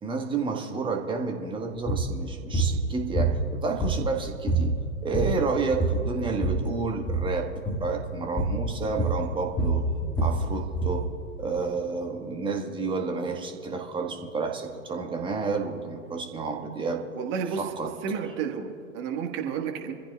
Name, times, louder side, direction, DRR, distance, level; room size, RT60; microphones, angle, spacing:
voice 1, 0.0-4.7 5.0-7.5 7.8-9.8 10.2-11.1 11.4-17.0 17.6-17.9, right 4 dB, 10° right, 3 dB, 1.5 m, -30 dB
sound 1, 1.9-2.1 2.5-2.8 3.2-4.2 4.5-4.7 5.0-5.5 5.7-6.7 7.0-7.3 7.7-7.9 8.4-8.6 9.0-11.0, right 2 dB, 10° left, 2.0 m, -26 dB
voice 2, 17.1-17.7 18.0-19.9, right 7 dB, 30° right, 3 dB, 1.6 m, -31 dB
25.5 x 15.0 x 2.4 m, 2.6 s
figure-of-eight pair, 105°, 41 cm